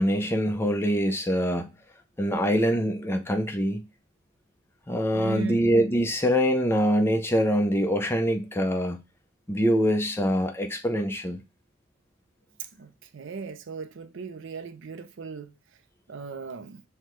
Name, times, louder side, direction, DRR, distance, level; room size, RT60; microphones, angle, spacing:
voice 1, 0.0-1.7 2.2-3.8 4.9-9.0 9.5-11.4, equal, 10° left, 0.5 m, -24 dB
voice 2, 5.1-5.7 12.8-15.5 16.1-16.8, right 4 dB, 65° right, 0.5 m, -37 dB
5.6 x 2.2 x 3.1 m
head